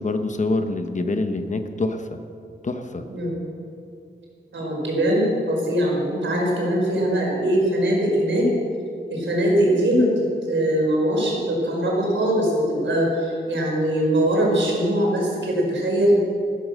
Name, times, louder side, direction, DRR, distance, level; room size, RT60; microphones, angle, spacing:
voice 1, 0.0-2.2 2.6-3.1, left 2 dB, 40° left, 7 dB, 1.0 m, -25 dB
voice 2, 3.1-3.4 4.5-8.5 9.1-10.1 10.5-16.2, right 1 dB, 85° right, -2 dB, 4.8 m, -21 dB
14.5 x 14.0 x 6.4 m, 2.4 s
wide cardioid pair, 170°, 19 cm